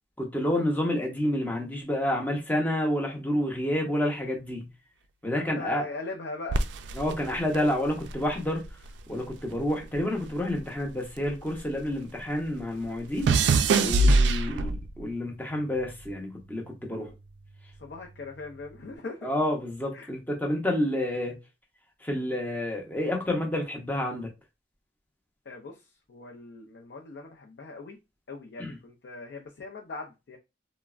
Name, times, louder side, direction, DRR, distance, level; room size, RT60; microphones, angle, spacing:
voice 1, 0.2-4.7 5.2-5.8 7.0-8.6 9.1-13.3 13.8-17.1 19.2-21.4 22.0-24.3 28.6-28.8, left 1 dB, 10° left, 0.6 m, -29 dB
voice 2, 5.3-6.6 16.9-17.1 17.8-19.3 19.9-20.1 25.5-28.0 28.3-30.4, left 3 dB, 70° left, 0.4 m, -40 dB
sound 1, 6.5-9.0 9.3-11.9 12.2-15.0 15.8-16.1, right 3 dB, 80° right, 0.3 m, -25 dB
3.3 x 2.1 x 2.3 m
head